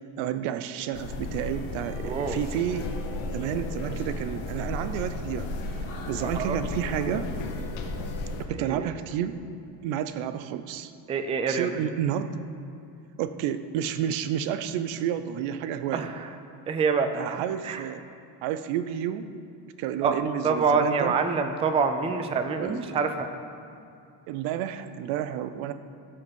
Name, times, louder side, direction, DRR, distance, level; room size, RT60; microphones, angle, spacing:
voice 1, 0.2-2.9 3.3-7.3 8.5-9.4 9.8-10.9 11.5-12.4 13.2-16.1 17.1-18.0 18.4-19.3 19.8-21.1 22.6-23.0 24.3-25.7, right 10 dB, 85° right, 11 dB, 0.7 m, -30 dB
sound 1, 0.9-8.5, left 2 dB, 80° left, 1.4 m, -34 dB
voice 2, 2.0-2.4 6.2-6.6 8.7-8.9 11.1-11.7 15.9-16.1 16.7-17.4 17.6-17.8 20.0-20.1 20.4-23.3, right 5 dB, 15° right, 7 dB, 0.3 m, -26 dB
16.0 x 5.7 x 5.3 m, 2.5 s
cardioid pair, 155°, 46 cm